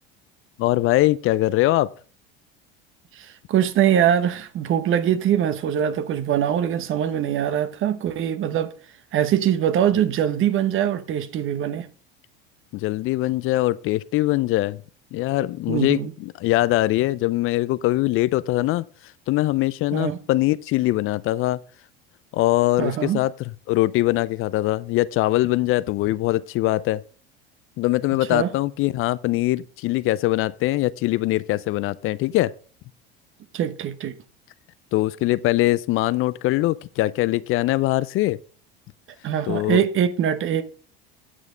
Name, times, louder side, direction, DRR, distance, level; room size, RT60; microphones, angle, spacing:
voice 1, 0.6-1.9 12.7-14.8 15.1-18.8 19.3-21.6 22.3-23.3 23.7-27.0 27.8-32.5 34.9-38.4 39.5-39.8, left 17 dB, 45° left, 0.4 m, -22 dB
voice 2, 3.1-8.7 9.1-11.9 15.7-16.1 19.9-20.2 22.8-23.2 28.3-28.5 33.5-34.2 39.2-40.6, right 10 dB, 45° right, 1.0 m, -22 dB
9.2 x 6.2 x 5.0 m
hypercardioid pair, 85°, 29 cm